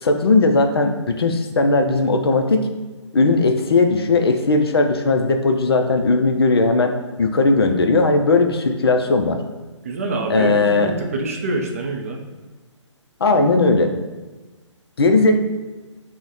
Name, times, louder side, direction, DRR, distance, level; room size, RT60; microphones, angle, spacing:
voice 1, 0.0-2.7 3.1-9.4 10.3-10.9 13.2-13.9 15.0-15.4, left 3 dB, 50° left, 6 dB, 0.4 m, -17 dB
voice 2, 9.8-12.2, right 2 dB, 30° right, 1 dB, 0.4 m, -25 dB
4.5 x 2.1 x 3.9 m, 1.2 s
figure-of-eight pair, 140°, 16 cm